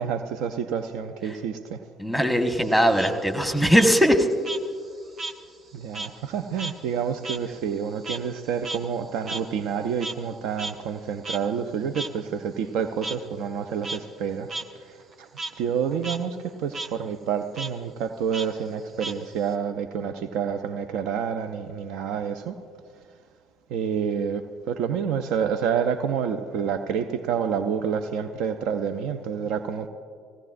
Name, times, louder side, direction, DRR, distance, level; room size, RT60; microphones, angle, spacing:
voice 1, 0.0-1.8 5.7-14.5 15.2-15.3 15.6-22.6 23.7-29.9, right 7 dB, 60° right, 9 dB, 0.5 m, -28 dB
voice 2, 2.0-4.3, equal, ahead, 5 dB, 1.3 m, -20 dB
Frog, 2.5-5.4 5.7-10.3 10.6-10.7 11.2-11.4 11.9-12.1 13.0-13.2 13.7-14.0 14.5-14.6 15.0-15.5 15.9-16.2 16.5-16.9 17.5-17.7 18.3-19.5, right 2 dB, 40° right, 0.9 m, -35 dB
19.5 x 16.0 x 2.5 m, 2.1 s
figure-of-eight pair, 50°, 0 cm